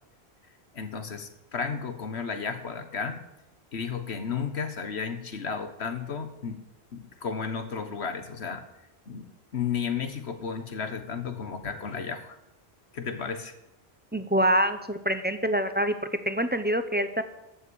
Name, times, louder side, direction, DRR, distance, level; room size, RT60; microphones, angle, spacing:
voice 1, 0.7-3.2 3.7-6.6 6.9-8.6 9.1-9.3 9.5-12.4 12.9-13.5, left 6 dB, 75° left, 9 dB, 1.6 m, -33 dB
voice 2, 14.1-15.9 16.3-17.2, equal, 10° right, 9 dB, 0.8 m, -25 dB
14.5 x 6.6 x 9.4 m, 0.90 s
omnidirectional pair, 1.1 m